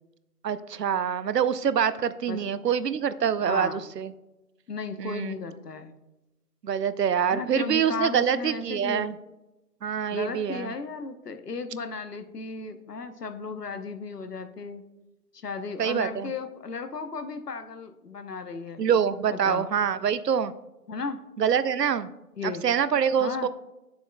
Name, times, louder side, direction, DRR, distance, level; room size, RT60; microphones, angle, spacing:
voice 1, 0.4-4.1 5.0-5.4 6.6-9.2 9.8-10.7 15.8-16.3 18.8-20.5 21.4-22.1 22.4-23.5, right 8 dB, 85° right, 14 dB, 0.7 m, -25 dB
voice 2, 3.5-3.8 4.7-5.9 7.3-9.1 10.1-14.8 15.3-18.8 19.3-19.7 20.9-21.2 22.4-22.6 23.2-23.5, left 4 dB, 75° left, 8 dB, 1.0 m, -35 dB
10.0 x 6.9 x 2.2 m, 1.0 s
hypercardioid pair, 180°, 47 cm